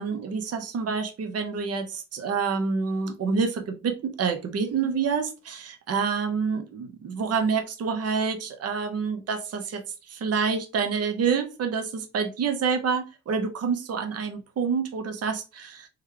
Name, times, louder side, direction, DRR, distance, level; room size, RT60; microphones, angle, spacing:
voice 1, 0.0-9.8 10.1-15.9, right 5 dB, 55° right, 0.9 m, -27 dB
3.2 x 3.1 x 3.7 m
cardioid pair, 90°, 30 cm